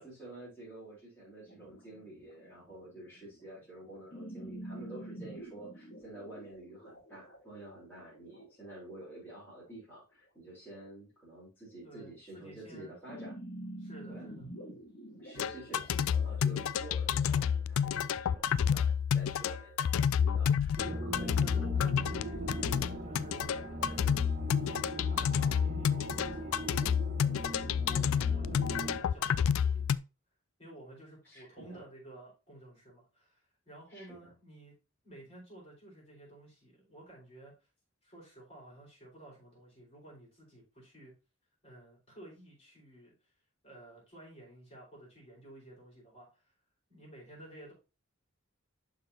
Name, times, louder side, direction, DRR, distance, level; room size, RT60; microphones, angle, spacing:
voice 1, 0.0-13.4 14.1-14.3 15.2-21.5 31.2-31.8 33.9-34.3, right 1 dB, 10° left, -9 dB, 3.7 m, -49 dB
sound 1, 1.4-9.7 13.1-18.8, right 1 dB, 50° left, 1.6 m, -48 dB
voice 2, 11.8-13.0 13.8-14.4 21.4-24.3 25.1-26.6 27.6-29.9 30.6-34.7 35.0-37.5 38.0-41.1 41.6-43.3 43.6-46.5 46.9-47.7, right 1 dB, 25° left, -4 dB, 4.2 m, -53 dB
sound 2, 15.4-30.0, left 7 dB, 70° left, 0.3 m, -30 dB
sound 3, 20.8-29.0, equal, 35° right, 1.1 m, -39 dB
11.5 x 3.9 x 2.8 m, 0.30 s
head